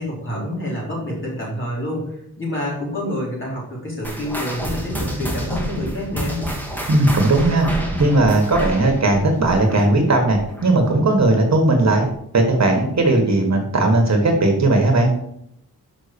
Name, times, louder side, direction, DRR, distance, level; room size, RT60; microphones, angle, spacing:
voice 1, 0.0-6.5, left 1 dB, 30° left, -5 dB, 3.8 m, -28 dB
sound 1, 4.0-10.9 11.2-11.5 12.1-12.2 13.0-13.1, right 1 dB, 5° left, 1.7 m, -28 dB
voice 2, 6.9-7.7 8.0-12.1 12.3-15.1, right 2 dB, 45° right, 3 dB, 1.6 m, -17 dB
6.2 x 5.5 x 6.9 m, 0.74 s
wide cardioid pair, 140°, 37 cm